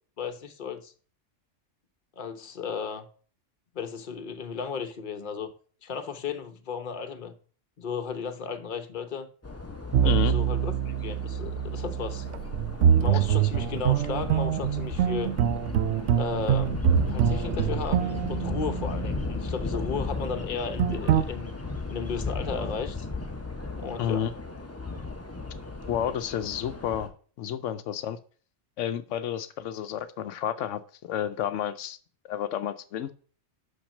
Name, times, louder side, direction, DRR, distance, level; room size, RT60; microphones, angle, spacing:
voice 1, 0.2-0.9 2.2-3.1 3.7-5.5 5.8-7.3 7.8-9.3 10.0-12.3 13.0-15.3 16.2-21.5 21.9-23.1 23.8-24.3, left 6 dB, 45° left, 1.0 m, -35 dB
sound 1, 9.4-27.1, left 3 dB, 15° left, 0.8 m, -36 dB
sound 2, 9.9-19.3 20.8-21.2, right 9 dB, 80° right, 0.9 m, -25 dB
voice 2, 24.0-24.3 25.9-27.1 27.4-28.2 28.8-32.0 32.2-33.1, left 10 dB, 90° left, 1.0 m, -30 dB
5.9 x 5.7 x 6.4 m
omnidirectional pair, 1.2 m